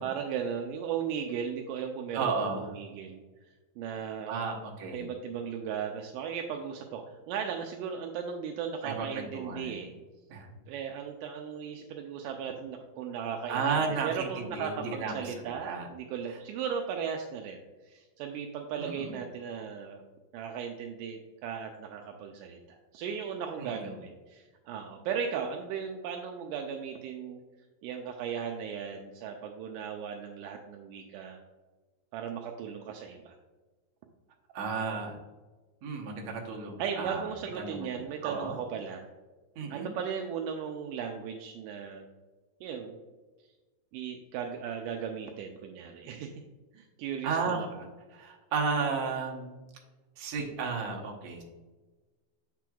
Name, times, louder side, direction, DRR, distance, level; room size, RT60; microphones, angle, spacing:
voice 1, 0.0-3.2 3.8-4.4 4.9-9.9 10.7-20.0 20.3-22.6 22.9-27.4 27.8-31.4 32.1-33.4 36.8-39.1 39.7-42.0 42.6-43.0 43.9-46.3 46.7-47.7, right 7 dB, 85° right, 3 dB, 1.9 m, -36 dB
voice 2, 2.1-2.7 4.3-5.1 8.8-9.7 10.3-10.5 13.5-15.3 15.6-15.9 16.3-16.4 18.8-19.1 23.6-23.9 34.5-35.2 35.8-37.3 37.6-37.9 38.2-38.6 39.6-39.9 47.2-47.7 48.1-49.6 50.2-51.4, right 5 dB, 65° right, 0 dB, 1.9 m, -33 dB
6.8 x 5.9 x 2.3 m, 1.3 s
omnidirectional pair, 4.2 m